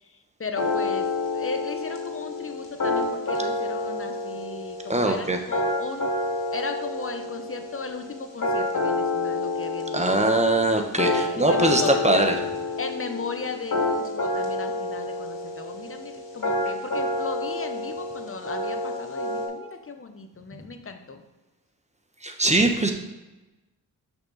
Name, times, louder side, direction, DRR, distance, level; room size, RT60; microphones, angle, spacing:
voice 1, 0.0-6.1 6.5-10.3 11.0-12.3 12.8-21.2, left 4 dB, 35° left, 6 dB, 0.9 m, -36 dB
sound 1, 0.6-19.5, left 2 dB, 60° left, 2.4 m, -28 dB
voice 2, 4.9-5.4 9.9-12.3 22.2-22.9, right 2 dB, 20° right, 4 dB, 1.1 m, -21 dB
6.3 x 6.0 x 4.0 m, 1.1 s
cardioid pair, 65°, 37 cm